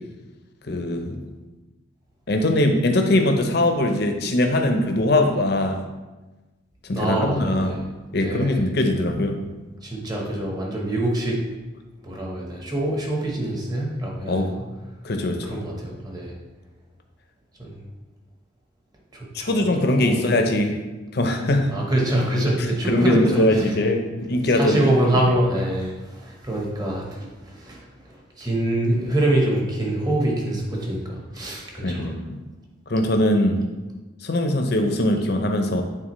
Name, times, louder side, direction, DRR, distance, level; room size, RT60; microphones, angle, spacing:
voice 1, 0.7-1.2 2.3-5.8 6.9-7.8 8.1-9.4 14.2-14.5 15.0-15.6 19.5-20.8 21.1-21.7 22.9-24.8 25.2-25.3 31.8-32.4 32.9-33.6 34.2-35.8, left 1 dB, 55° left, 4 dB, 0.7 m, -21 dB
voice 2, 6.9-7.9 8.1-8.6 9.8-11.4 12.0-14.6 15.4-16.3 17.6-17.8 19.1-20.2 21.7-23.7 24.5-27.8 28.4-32.1, right 1 dB, 20° right, -2 dB, 1.1 m, -25 dB
8.8 x 3.8 x 3.1 m, 1.2 s
head